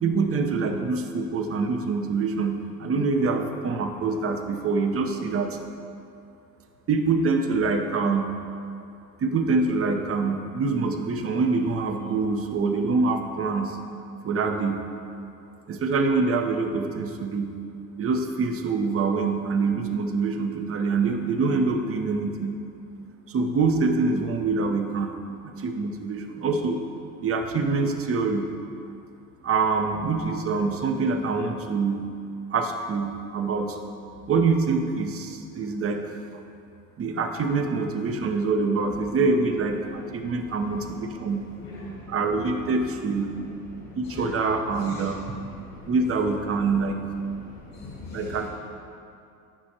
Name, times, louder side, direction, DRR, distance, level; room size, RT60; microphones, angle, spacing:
voice 1, 0.0-5.6 6.9-8.3 9.2-13.8 14.2-14.8 15.7-17.5 18.0-22.5 23.3-25.1 25.4-26.8 27.2-28.5 29.4-32.0 32.5-33.8 34.3-36.2 37.0-41.4 42.1-43.3 44.0-45.2 45.9-47.0 48.1-48.5, right 4 dB, 30° right, 5 dB, 1.0 m, -25 dB
voice 2, 41.6-42.1 43.3-43.4 43.9-44.3 44.8-45.0 45.3-45.8 47.5-48.3, left 3 dB, 50° left, -5 dB, 1.9 m, -41 dB
15.0 x 6.2 x 2.9 m, 2.5 s
hypercardioid pair, 80°, 44 cm